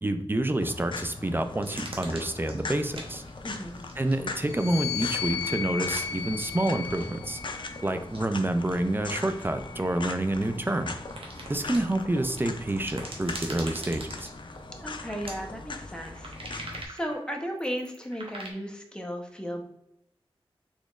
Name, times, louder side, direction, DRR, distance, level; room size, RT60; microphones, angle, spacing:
voice 1, 0.0-3.2 4.0-7.4 7.8-11.0 11.5-14.3, right 1 dB, 20° right, 8 dB, 0.4 m, -28 dB
sound 1, 0.6-16.9, left 3 dB, 55° left, 0.4 m, -40 dB
sound 2, 1.6-4.1 4.4-4.8 5.1-5.5 5.9-6.0 6.9-7.3 8.1-8.2 9.0-11.8 12.3-14.7 15.2-15.3 15.8-18.5, right 1 dB, 65° right, 0.9 m, -43 dB
voice 2, 3.4-3.8 14.8-19.6, equal, 10° left, 2 dB, 0.7 m, -35 dB
sound 3, 4.4-8.0 8.8-10.4, left 8 dB, 80° left, 0.8 m, -36 dB
4.0 x 3.0 x 2.4 m, 0.80 s
wide cardioid pair, 50°, 10 cm